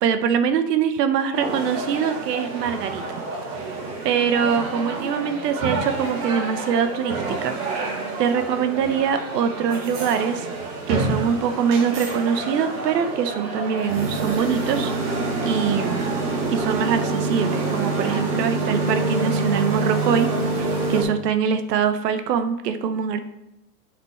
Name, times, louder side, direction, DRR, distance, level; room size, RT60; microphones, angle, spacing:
voice 1, 0.0-3.0 4.0-7.5 8.2-10.5 10.9-14.9 15.4-16.2 16.5-20.3 20.6-23.2, right 7 dB, 80° right, 9 dB, 0.9 m, -23 dB
sound 1, 1.3-21.0, right 3 dB, 60° right, 2.7 m, -27 dB
7.4 x 6.0 x 4.3 m, 0.87 s
hypercardioid pair, 115°, 48 cm